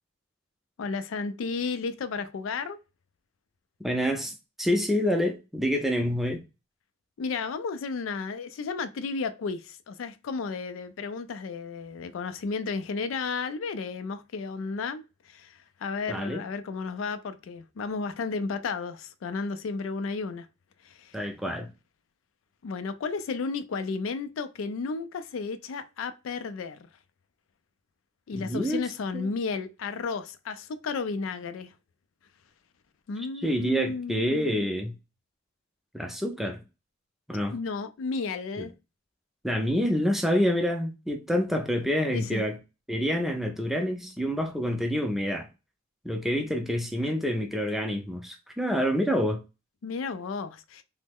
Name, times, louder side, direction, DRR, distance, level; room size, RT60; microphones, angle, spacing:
voice 1, 0.8-2.8 7.2-20.5 20.8-21.2 22.6-26.9 28.3-31.7 33.1-34.7 37.5-38.7 42.1-42.4 47.0-47.1 49.8-50.8, left 4 dB, 90° left, 0.4 m, -33 dB
voice 2, 3.8-6.4 16.1-16.4 21.1-21.7 28.3-28.8 29.1-29.3 33.4-35.0 35.9-36.6 37.3-37.5 38.6-38.7 39.4-42.6 42.9-45.5 46.0-49.4, equal, ahead, 0.4 m, -27 dB
3.1 x 2.0 x 3.4 m
head